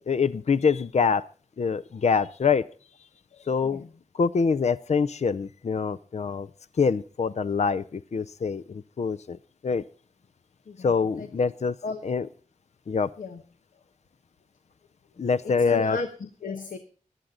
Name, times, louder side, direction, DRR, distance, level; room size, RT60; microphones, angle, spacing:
voice 1, 0.1-1.2 1.6-2.6 3.4-3.8 4.1-6.5 6.8-9.4 9.6-9.8 10.8-11.8 12.0-12.3 12.9-13.1 15.2-16.0, left 5 dB, 55° left, 14 dB, 0.5 m, -25 dB
voice 2, 3.3-3.9 10.7-11.3 11.8-12.0 13.2-13.4 15.4-16.8, left 3 dB, 85° left, 7 dB, 1.1 m, -35 dB
16.5 x 12.0 x 3.8 m, 0.38 s
cardioid pair, 50°, 13 cm